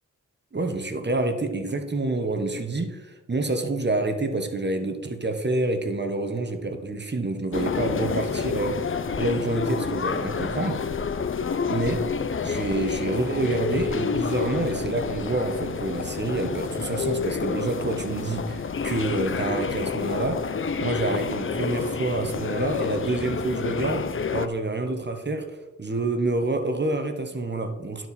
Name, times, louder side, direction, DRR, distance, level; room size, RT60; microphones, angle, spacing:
voice 1, 0.5-8.8 9.2-10.8 11.7-12.0 12.4-20.4 20.8-28.1, right 2 dB, 35° right, 6 dB, 1.1 m, -27 dB
sound 1, 7.5-24.5, left 5 dB, 40° left, 0.5 m, -29 dB
12.0 x 4.6 x 4.2 m, 1.1 s
cardioid pair, 60°, 31 cm